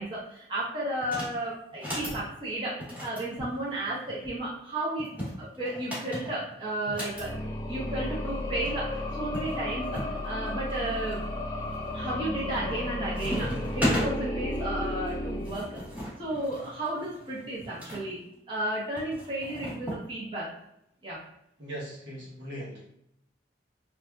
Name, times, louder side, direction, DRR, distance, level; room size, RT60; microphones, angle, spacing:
voice 1, 0.0-5.1 5.4-7.3 7.7-11.2 11.9-15.8 16.2-18.2 18.5-20.5 21.0-21.2, right 1 dB, 25° right, -7 dB, 0.8 m, -33 dB
sound 1, 1.0-1.4 1.7-2.2 2.8-4.2 5.0-7.3 8.4-8.5 8.6-8.8 9.3-10.1 10.7-11.2 11.7-12.1 12.4-12.9 13.1-14.1 15.1-18.0 19.0-20.0, equal, 10° right, 1.1 m, -35 dB
sound 2, 7.1-16.1, left 1 dB, 20° left, 0.4 m, -34 dB
voice 2, 21.6-22.9, equal, 80° right, -5 dB, 1.1 m, -39 dB
3.3 x 2.5 x 2.3 m, 0.79 s
head